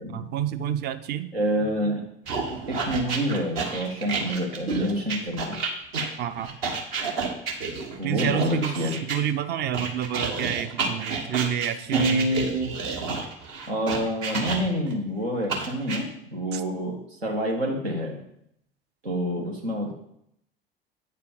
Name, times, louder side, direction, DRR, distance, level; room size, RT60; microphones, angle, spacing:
voice 1, 0.1-1.3 6.2-6.6 8.0-12.3 16.5-16.6, right 10 dB, 35° right, 11 dB, 0.6 m, -29 dB
voice 2, 1.3-2.1 2.7-5.6 8.0-8.9 11.9-12.7 13.7-17.0 17.2-18.2 19.0-19.9, equal, 80° right, -1 dB, 1.6 m, -27 dB
sound 1, 2.3-9.2 9.7-14.9 15.5-16.0, right 4 dB, 55° right, 1.3 m, -30 dB
8.5 x 4.7 x 5.0 m, 0.75 s
figure-of-eight pair, 70°, 30 cm